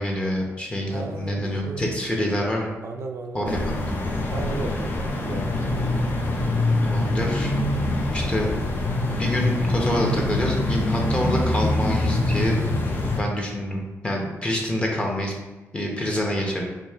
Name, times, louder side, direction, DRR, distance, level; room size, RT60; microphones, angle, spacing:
voice 1, 0.0-2.7 3.3-4.0 6.8-7.5 8.1-8.5 9.1-12.6 13.2-15.3 15.7-16.6, equal, 20° left, -1 dB, 1.0 m, -26 dB
voice 2, 0.9-2.0 2.8-3.8 4.3-5.5, right 4 dB, 55° right, 4 dB, 0.4 m, -35 dB
sound 1, 3.4-13.2, left 2 dB, 40° left, 0.7 m, -24 dB
5.0 x 2.8 x 3.6 m, 1.2 s
cardioid pair, 120°, 6 cm